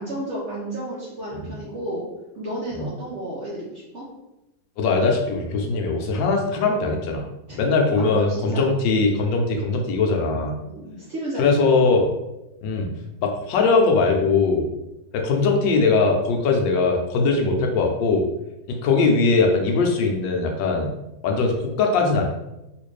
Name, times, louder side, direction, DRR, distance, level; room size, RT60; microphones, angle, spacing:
voice 1, 0.0-2.0 2.4-4.1 7.5-7.6 8.0-8.7 10.6-11.4, right 1 dB, 60° right, -6 dB, 0.8 m, -32 dB
voice 2, 4.8-7.2 7.6-10.6 11.4-12.1 12.6-12.9 13.2-14.7 15.1-18.2 18.7-20.9 21.2-22.3, left 4 dB, 80° left, 2 dB, 1.3 m, -20 dB
3.5 x 2.5 x 3.1 m, 0.94 s
omnidirectional pair, 2.0 m